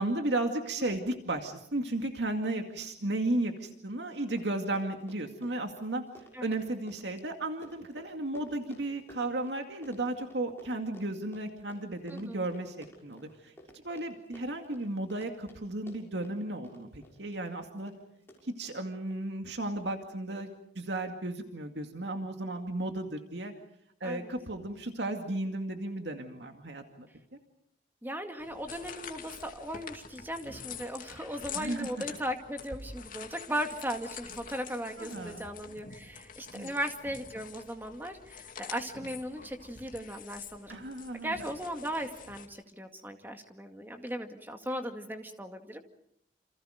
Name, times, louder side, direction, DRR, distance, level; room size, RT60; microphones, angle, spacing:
voice 1, 0.0-6.0 6.4-13.5 13.8-17.9 18.4-20.5 20.8-23.5 24.0-27.1 31.5-31.9 35.0-35.5 36.5-36.7 40.7-41.4, right 2 dB, 75° right, 4 dB, 2.3 m, -34 dB
Run, 3.9-4.0 4.2-19.2 19.8-20.1 20.4-20.5, equal, 15° left, 6.5 m, -55 dB
voice 2, 12.1-12.4 24.0-24.3 28.0-40.8 41.2-45.8, equal, 10° right, 5 dB, 2.1 m, -37 dB
sound 1, 28.4-42.4, left 6 dB, 50° left, 2.6 m, -46 dB
28.5 x 28.5 x 5.1 m, 0.72 s
head